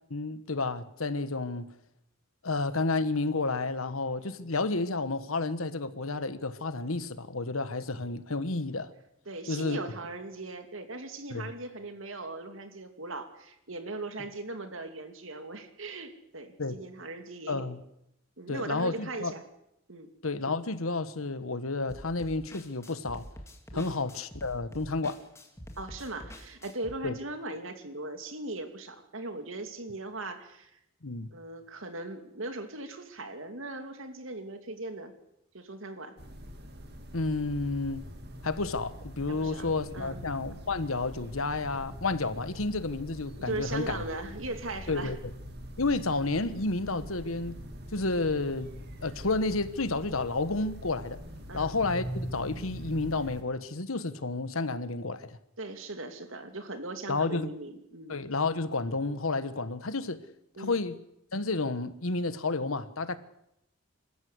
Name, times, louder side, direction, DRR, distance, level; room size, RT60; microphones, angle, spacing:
voice 1, 0.1-1.6 2.4-8.9 9.5-9.8 11.3-11.5 16.6-16.8 17.5-17.8 18.5-19.3 20.2-23.2 23.7-25.2 27.0-27.2 31.0-31.3 37.1-38.0 38.4-44.0 44.9-45.2 45.8-47.6 47.9-48.7 49.0-51.2 51.5-55.4 57.1-57.5 58.1-60.2 60.6-61.0 61.3-63.2, left 3 dB, 80° left, 1.4 m, -31 dB
voice 2, 9.3-17.7 18.4-19.4 19.9-20.1 23.7-24.0 25.8-30.7 31.3-35.1 35.5-36.1 39.3-40.2 43.4-45.1 51.5-51.8 55.6-58.1 60.6-60.8, right 2 dB, 70° right, 2.7 m, -39 dB
sound 1, 21.9-26.9, equal, 15° left, 2.2 m, -46 dB
sound 2, 36.2-53.4, equal, 50° right, 2.5 m, -43 dB
26.5 x 14.5 x 8.1 m
head